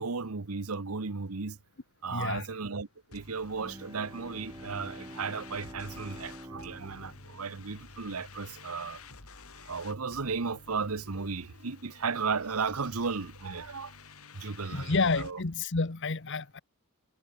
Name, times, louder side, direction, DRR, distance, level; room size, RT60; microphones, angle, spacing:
voice 1, 0.0-1.6 2.0-9.0 9.6-13.9 14.3-15.4, right 4 dB, 80° right, 1.0 m, -35 dB
voice 2, 2.1-2.5 14.4-16.6, left 3 dB, 55° left, 1.1 m, -30 dB
sound 1, 3.1-15.3, left 4 dB, 80° left, 3.2 m, -51 dB
Bowed string instrument, 3.4-8.8, right 1 dB, 20° right, 3.3 m, -48 dB
head